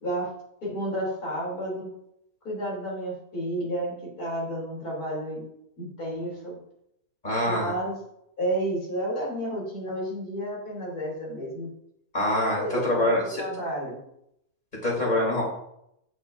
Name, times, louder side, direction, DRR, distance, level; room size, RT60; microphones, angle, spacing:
voice 1, 0.0-0.3 0.6-1.9 2.4-5.4 5.8-6.6 7.4-8.0 8.4-11.7 12.3-14.0, right 1 dB, 70° left, -4 dB, 4.3 m, -31 dB
voice 2, 7.2-7.7 12.1-13.4 14.8-15.4, left 1 dB, 25° left, -3 dB, 3.7 m, -25 dB
9.3 x 8.9 x 2.8 m, 0.78 s
omnidirectional pair, 1.7 m